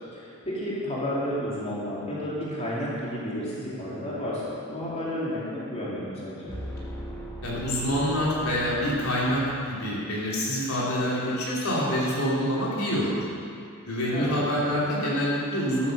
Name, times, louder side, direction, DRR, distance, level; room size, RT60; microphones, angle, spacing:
voice 1, 0.1-6.5 14.1-14.5, equal, 30° left, -8 dB, 3.0 m, -31 dB
sound 1, 6.5-9.9, equal, 10° left, 1.4 m, -39 dB
voice 2, 7.4-13.2 13.9-15.9, equal, 75° left, -6 dB, 3.3 m, -26 dB
12.0 x 9.4 x 6.7 m, 2.5 s
head